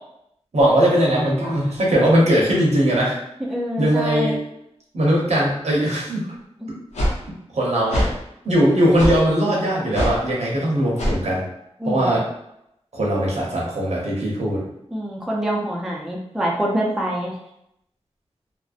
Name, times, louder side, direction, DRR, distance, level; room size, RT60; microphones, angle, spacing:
voice 1, 0.5-3.2 3.8-4.4 4.9-6.2 7.5-8.1 8.4-11.4 11.8-12.3 12.9-14.6, right 1 dB, 75° right, -4 dB, 0.8 m, -19 dB
voice 2, 3.5-4.4 6.6-6.7 11.8-12.2 14.9-17.3, equal, 5° right, -4 dB, 0.5 m, -25 dB
sound 1, 6.9-7.2 7.9-8.1 9.0-9.2 9.9-10.2 11.0-11.2, equal, 85° left, 0.6 m, -21 dB
2.5 x 2.1 x 2.4 m, 0.80 s
wide cardioid pair, 80°, 11 cm